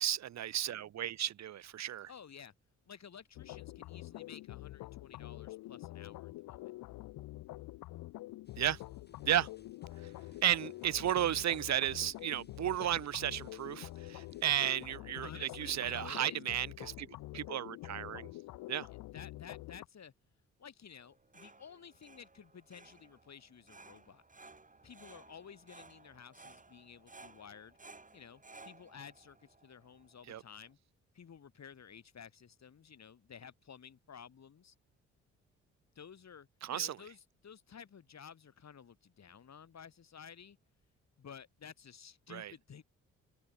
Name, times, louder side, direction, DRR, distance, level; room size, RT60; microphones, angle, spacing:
voice 1, 0.0-2.1 8.6-8.8 9.2-9.5 10.4-17.1 17.3-18.3 18.7-18.9 30.3-30.4 36.6-37.0 42.3-42.5, right 11 dB, 55° right, 0.7 m, -33 dB
voice 2, 2.1-2.5 2.9-6.7 15.2-16.4 19.1-20.1 20.6-24.2 24.8-27.8 28.1-30.8 31.1-34.7 35.9-40.6 41.2-42.8, left 7 dB, 50° left, 4.9 m, -53 dB
sound 1, 3.4-19.9, left 18 dB, 80° left, 2.2 m, -47 dB
sound 2, 8.4-15.0, left 4 dB, 30° left, 4.1 m, -62 dB
sound 3, 21.0-30.7, right 3 dB, 25° right, 3.6 m, -58 dB
hypercardioid pair, 50°, 34 cm